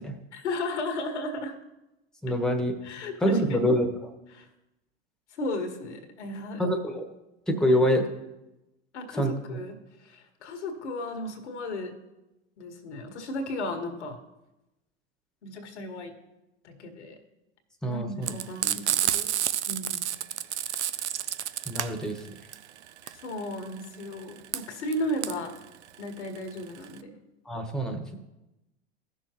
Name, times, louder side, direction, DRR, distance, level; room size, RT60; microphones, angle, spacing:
voice 1, 0.3-1.6 2.8-3.6 4.3-4.5 5.3-6.6 7.7-7.8 8.9-11.9 12.6-14.2 15.4-16.1 16.6-17.2 17.9-19.3 19.7-20.0 23.1-25.5 26.0-27.2, left 1 dB, 85° left, 4 dB, 1.7 m, -35 dB
voice 2, 2.2-2.7 3.2-3.9 6.6-7.0 7.5-8.1 9.2-9.6 17.8-18.3 21.7-22.2 27.5-28.2, equal, ahead, 5 dB, 1.3 m, -25 dB
Frying (food), 18.2-27.0, right 12 dB, 85° right, 0.6 m, -30 dB
15.5 x 6.4 x 3.0 m, 0.97 s
hypercardioid pair, 90°, 34 cm